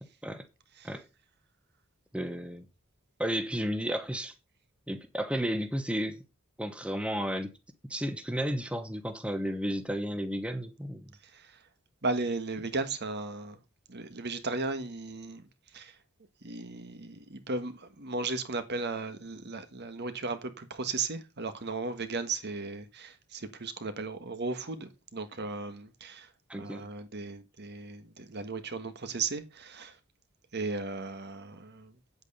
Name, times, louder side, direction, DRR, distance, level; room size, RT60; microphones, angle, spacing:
voice 1, 2.1-2.6 3.2-4.3 4.9-6.2 6.6-7.5 7.9-11.1 26.5-26.9, equal, 5° right, 1.0 m, -33 dB
voice 2, 12.0-13.6 13.9-15.4 15.7-15.9 16.4-26.3 26.5-29.9 30.5-31.9, right 3 dB, 50° right, 1.5 m, -36 dB
8.7 x 8.1 x 5.5 m
head